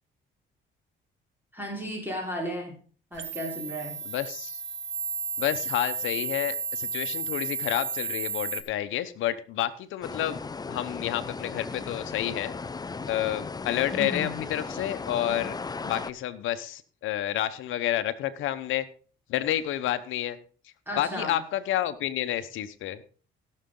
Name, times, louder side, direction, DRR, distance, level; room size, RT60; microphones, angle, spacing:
voice 1, 1.5-2.8 3.1-4.0 13.9-14.4 15.2-15.4 20.9-21.4, equal, 10° right, 0 dB, 4.0 m, -34 dB
sound 1, 3.1-8.6, right 5 dB, 70° right, 1.3 m, -33 dB
voice 2, 4.0-4.6 5.4-10.4 10.7-12.5 13.1-15.6 15.8-18.8 19.3-20.4 21.0-23.0, left 12 dB, 85° left, 12 dB, 1.0 m, -29 dB
sound 2, 10.0-16.1, left 4 dB, 20° left, 0.5 m, -36 dB
17.0 x 6.6 x 3.8 m, 0.40 s
cardioid pair, 90°, 20 cm